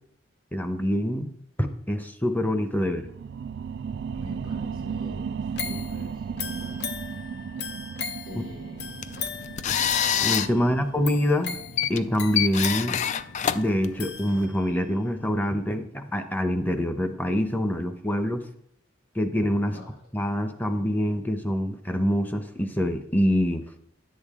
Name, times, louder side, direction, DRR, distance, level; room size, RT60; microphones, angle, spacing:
voice 1, 0.5-1.3 1.6-3.0 10.2-11.6 11.9-13.0 13.5-18.4 19.2-19.7 20.1-23.6, equal, 10° left, 7 dB, 0.8 m, -25 dB
sound 1, 2.8-13.9 14.3-14.4, right 6 dB, 60° right, 0.3 m, -36 dB
voice 2, 4.1-6.8 8.3-8.9 10.6-10.8 19.6-19.9, left 1 dB, 85° left, -3 dB, 3.0 m, -44 dB
sound 2, 5.6-14.8 15.3-15.4, left 6 dB, 60° left, 0.8 m, -38 dB
sound 3, 8.8-14.4, left 8 dB, 40° left, 0.3 m, -28 dB
10.5 x 8.6 x 3.7 m, 0.70 s
head